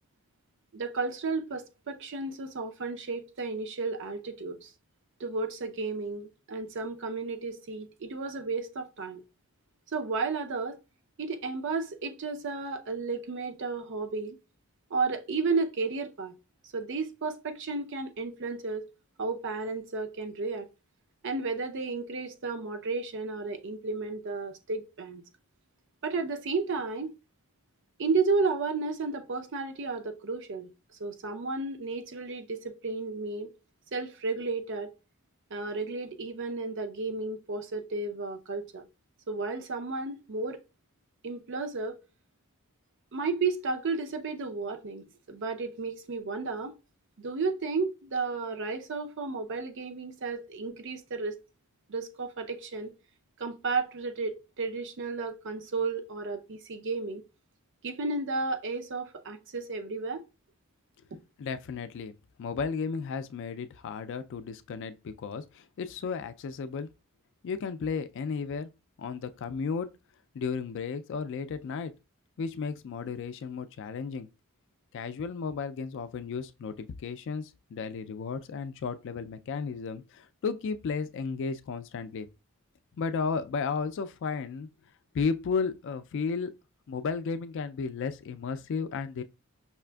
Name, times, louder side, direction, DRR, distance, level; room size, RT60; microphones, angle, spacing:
voice 1, 0.7-4.7 5.2-9.2 9.9-10.8 11.2-14.4 14.9-16.3 16.7-18.8 19.2-20.7 21.2-25.2 26.0-27.1 28.0-30.7 31.0-33.5 33.9-34.9 35.5-38.9 39.3-40.6 41.2-42.0 43.1-46.7 47.2-51.4 51.9-52.9 53.4-57.2 57.8-60.2, right 4 dB, 60° right, 0.5 m, -33 dB
voice 2, 61.4-66.9 67.4-68.7 69.0-69.9 70.3-71.9 72.4-74.3 74.9-82.3 83.0-84.7 85.1-86.5 86.9-89.2, left 5 dB, 60° left, 0.3 m, -34 dB
5.5 x 2.5 x 2.2 m
head